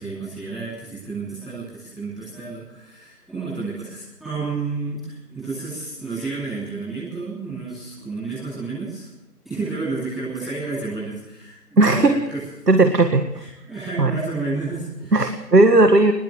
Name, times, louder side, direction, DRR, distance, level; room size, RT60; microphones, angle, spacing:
voice 1, 0.0-9.1 9.4-12.4 13.3-15.3, right 3 dB, ahead, -16 dB, 4.6 m, -31 dB
voice 2, 11.8-12.2 12.7-13.5 14.0-14.1 15.1-16.1, right 2 dB, 75° right, 8 dB, 2.0 m, -16 dB
21.0 x 17.0 x 7.7 m, 0.92 s
figure-of-eight pair, 170°, 48 cm